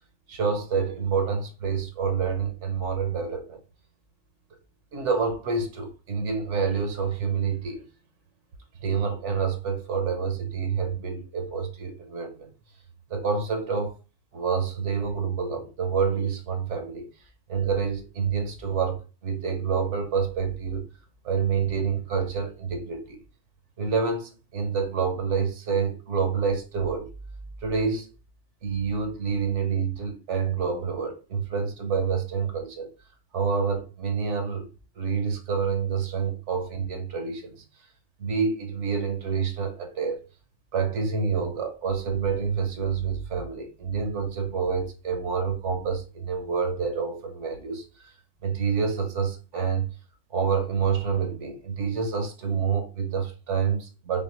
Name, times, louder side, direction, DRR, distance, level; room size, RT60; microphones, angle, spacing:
voice 1, 0.3-3.6 4.9-7.9 8.8-12.5 13.1-14.0 14.3-17.1 17.5-20.9 21.2-23.2 23.8-27.1 27.6-28.1 28.6-32.9 33.3-34.7 35.0-37.6 38.2-40.2 40.7-48.1 48.4-49.9 50.3-54.2, right 6 dB, 85° right, 1.2 m, -27 dB
4.2 x 3.3 x 3.0 m
omnidirectional pair, 1.2 m